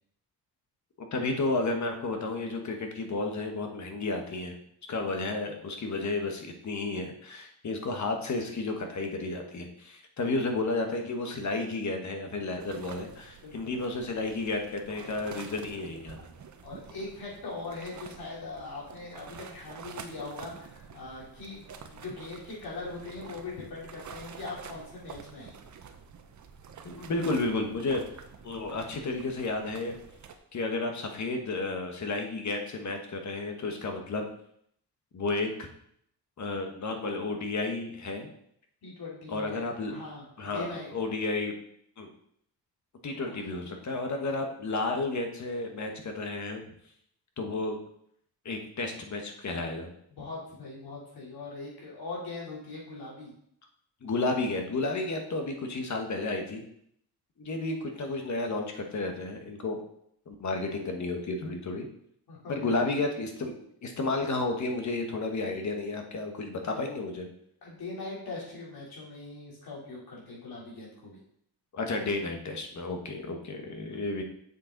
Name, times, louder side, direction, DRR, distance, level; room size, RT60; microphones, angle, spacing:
voice 1, 1.0-4.5 4.9-16.2 26.8-28.1 28.4-30.0 30.5-34.2 35.1-35.7 36.4-38.3 39.3-40.0 40.4-41.5 42.0-42.1 43.0-46.6 47.4-47.8 48.4-49.9 54.0-56.6 57.4-59.8 60.3-61.9 62.5-67.3 71.7-74.2, left 3 dB, 45° left, 4 dB, 1.3 m, -32 dB
sound 1, 12.6-30.4, right 6 dB, 50° right, 0.8 m, -48 dB
voice 2, 13.4-14.0 16.6-25.6 38.8-41.0 43.3-43.4 50.1-53.3 62.3-62.8 67.6-71.2, left 3 dB, 70° left, -5 dB, 3.6 m, -41 dB
7.4 x 6.8 x 3.9 m, 0.70 s
cardioid pair, 125°, 38 cm